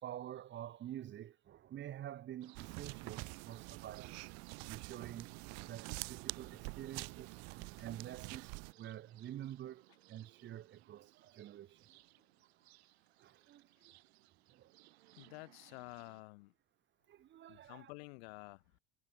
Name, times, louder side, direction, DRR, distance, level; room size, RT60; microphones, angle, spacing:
voice 1, 0.0-4.2 4.7-5.3 5.6-12.0 13.2-13.9 14.5-14.7 17.1-17.9, right 12 dB, 35° right, 1.4 m, -48 dB
sound 1, 2.4-16.2, right 19 dB, 90° right, 7.5 m, -64 dB
sound 2, 2.6-8.7, right 30 dB, 55° right, 0.4 m, -46 dB
voice 2, 15.2-16.5 17.5-18.8, left 28 dB, 80° left, 1.2 m, -51 dB
supercardioid pair, 120°, 31 cm